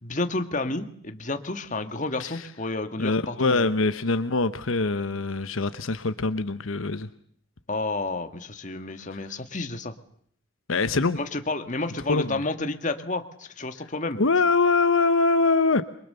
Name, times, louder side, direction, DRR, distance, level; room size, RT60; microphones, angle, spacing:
voice 1, 0.0-3.7 7.7-9.9 11.1-14.2, left 2 dB, 40° left, 7 dB, 1.9 m, -31 dB
voice 2, 3.0-7.1 9.1-9.2 10.7-11.2 12.1-12.4 14.2-15.8, left 3 dB, 80° left, 11 dB, 1.0 m, -23 dB
28.5 x 24.0 x 6.9 m, 0.63 s
head